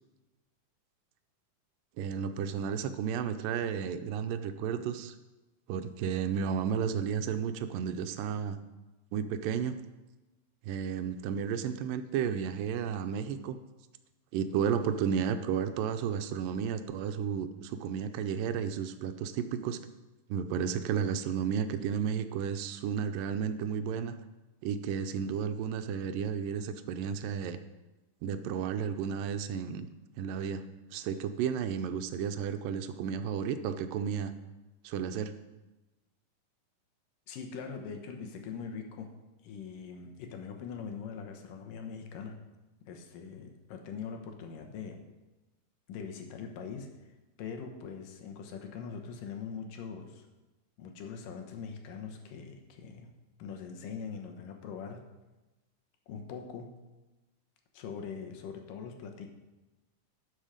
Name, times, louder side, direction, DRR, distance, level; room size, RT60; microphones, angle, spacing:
voice 1, 2.0-5.2 5.7-8.6 9.1-9.8 10.6-13.6 14.3-19.8 20.3-24.2 24.6-27.6 28.2-29.9 30.2-30.6 30.9-34.3 34.8-35.3, right 7 dB, 85° right, 9 dB, 2.3 m, -32 dB
voice 2, 37.3-39.1 39.4-42.4 42.9-45.0 45.9-46.9 47.4-50.3 50.8-53.1 53.4-55.0 56.1-56.7 57.7-59.3, left 6 dB, 80° left, 4 dB, 2.7 m, -42 dB
12.0 x 6.3 x 5.0 m, 1.1 s
omnidirectional pair, 3.8 m